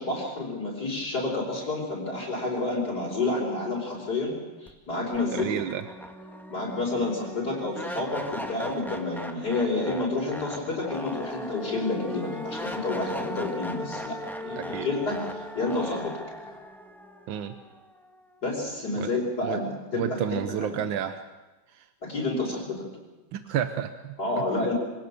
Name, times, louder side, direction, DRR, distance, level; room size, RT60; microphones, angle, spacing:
voice 1, 0.0-5.5 6.5-16.2 18.4-20.8 22.0-22.9 24.2-24.7, left 2 dB, 55° left, -5 dB, 5.2 m, -29 dB
sound 1, 4.7-4.8 5.1-18.2, equal, ahead, 1.5 m, -38 dB
voice 2, 5.3-5.8 14.6-14.9 17.3-17.6 19.0-19.1 19.4-19.6 19.9-21.2 21.7-21.9 23.3-24.2, right 9 dB, 80° right, 9 dB, 1.7 m, -30 dB
25.0 x 18.0 x 6.8 m, 1.1 s
omnidirectional pair, 2.1 m